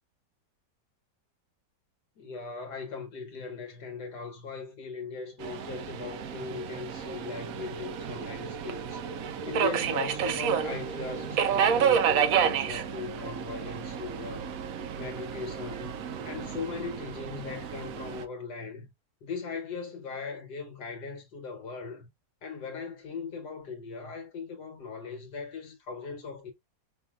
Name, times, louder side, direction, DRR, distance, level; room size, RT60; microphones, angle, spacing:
voice 1, 2.2-14.6 14.9-18.9 19.2-22.1 22.4-26.5, left 5 dB, 70° left, 1.6 m, -39 dB
Subway metro underground, 5.4-18.2, right 7 dB, 65° right, 0.9 m, -30 dB
5.6 x 2.6 x 2.3 m
omnidirectional pair, 1.9 m